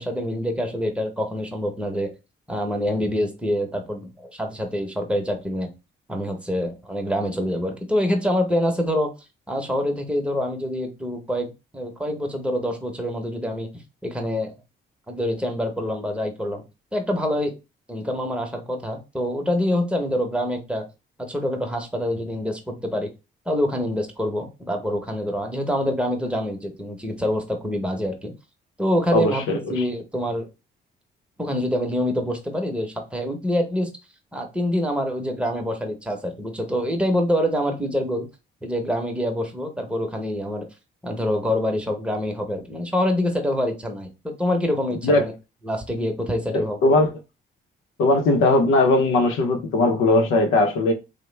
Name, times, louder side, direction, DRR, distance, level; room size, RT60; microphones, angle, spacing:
voice 1, 0.0-2.1 2.5-5.7 6.1-9.1 9.5-13.7 14.0-14.5 15.1-16.6 16.9-17.5 17.9-20.9 21.3-23.1 23.5-28.3 28.8-29.4 29.7-30.5 31.4-33.9 34.3-38.3 38.6-40.7 41.0-45.3 45.6-46.8, left 1 dB, 5° right, 0.8 m, -25 dB
voice 2, 29.1-29.8 45.0-45.2 46.5-47.1 48.0-50.9, left 2 dB, 85° left, 0.6 m, -19 dB
3.1 x 2.0 x 3.2 m
cardioid pair, 90°, 20 cm